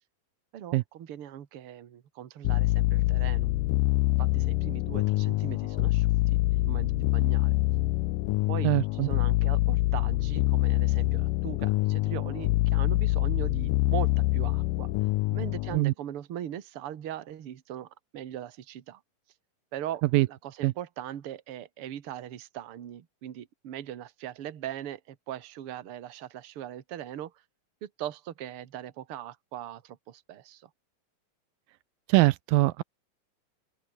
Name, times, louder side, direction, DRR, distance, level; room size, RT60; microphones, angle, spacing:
voice 1, 0.5-3.5 4.2-6.1 6.5-7.5 8.5-8.7 9.0-14.9 15.3-19.0 19.7-27.3 27.8-30.7, right 11 dB, 50° right, 2.0 m, -40 dB
sound 1, 2.4-15.8, left 19 dB, 80° left, 2.2 m, -25 dB
voice 2, 8.6-9.1 15.7-15.9 20.1-20.3 20.6-20.7 32.1-32.8, right 19 dB, 85° right, 2.4 m, -22 dB
open air
omnidirectional pair, 4.1 m